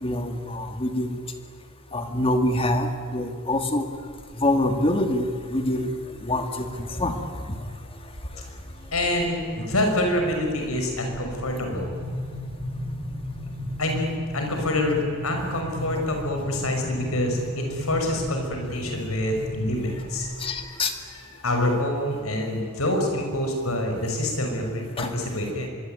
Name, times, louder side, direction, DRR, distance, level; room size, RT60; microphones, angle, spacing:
voice 1, 0.0-1.2 1.9-3.9 4.4-5.9 6.2-7.1 20.4-20.9 25.0-25.1, left 1 dB, 25° left, 6 dB, 2.4 m, -25 dB
sound 1, 4.0-4.5 4.9-5.5 6.2-7.0 7.4-7.8 8.1-20.7, equal, 50° right, 5.8 m, -35 dB
voice 2, 8.9-11.9 13.8-20.8 21.4-25.7, left 1 dB, 75° left, 3 dB, 6.3 m, -26 dB
24.0 x 23.5 x 9.4 m, 2.1 s
head